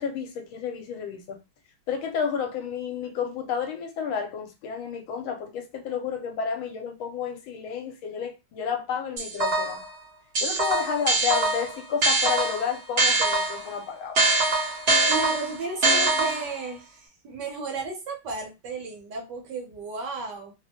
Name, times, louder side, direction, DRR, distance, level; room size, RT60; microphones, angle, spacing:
voice 1, 0.0-1.4 1.9-9.8 10.4-14.2, left 7 dB, 80° left, 1.4 m, -31 dB
sound 1, 9.2-9.9 10.4-13.7 14.2-16.6, right 2 dB, 45° right, 0.8 m, -23 dB
voice 2, 15.1-20.5, right 3 dB, 65° right, 1.2 m, -34 dB
3.3 x 2.1 x 2.8 m
omnidirectional pair, 2.3 m